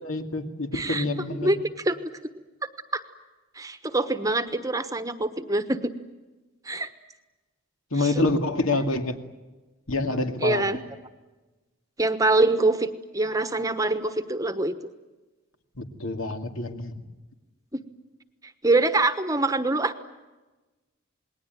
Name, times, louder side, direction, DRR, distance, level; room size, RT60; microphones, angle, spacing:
voice 1, 0.0-1.5 7.9-9.2 9.9-10.6 15.8-17.0, left 2 dB, 75° left, 6 dB, 2.4 m, -27 dB
voice 2, 0.7-1.0 1.4-2.0 2.9-3.0 3.5-5.9 6.6-6.9 8.0-8.1 10.4-10.8 12.0-12.9 13.1-14.7 17.7-17.8 18.6-19.9, right 2 dB, 15° right, 10 dB, 1.1 m, -24 dB
28.0 x 20.5 x 9.2 m, 1.2 s
head